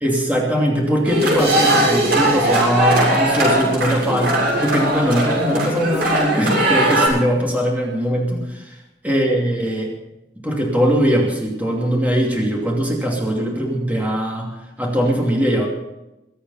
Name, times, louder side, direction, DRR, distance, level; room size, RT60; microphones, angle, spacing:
voice 1, 0.0-8.8 9.0-9.9 10.4-15.7, equal, 10° right, -2 dB, 2.7 m, -20 dB
sound 1, 1.0-7.1, right 1 dB, 60° right, 7.6 m, -19 dB
sound 2, 1.4-4.5, right 3 dB, 35° right, 2.4 m, -30 dB
22.5 x 8.6 x 5.7 m, 0.96 s
head